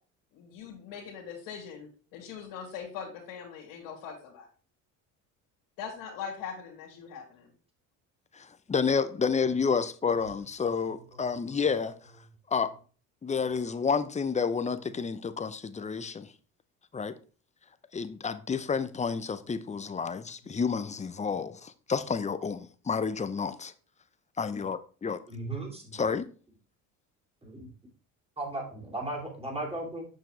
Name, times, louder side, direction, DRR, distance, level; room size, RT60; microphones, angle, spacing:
voice 1, 0.3-4.5 5.8-7.5, left 7 dB, 85° left, 2.2 m, -41 dB
voice 2, 8.3-12.0 12.5-12.7 13.2-16.3 16.9-17.2 17.9-23.7 24.4-25.2 25.9-26.3, left 5 dB, 20° left, 0.6 m, -30 dB
voice 3, 25.3-26.0 27.4-27.7 28.4-30.1, right 2 dB, 15° right, 2.9 m, -36 dB
7.0 x 5.7 x 3.2 m
supercardioid pair, 75°, 37 cm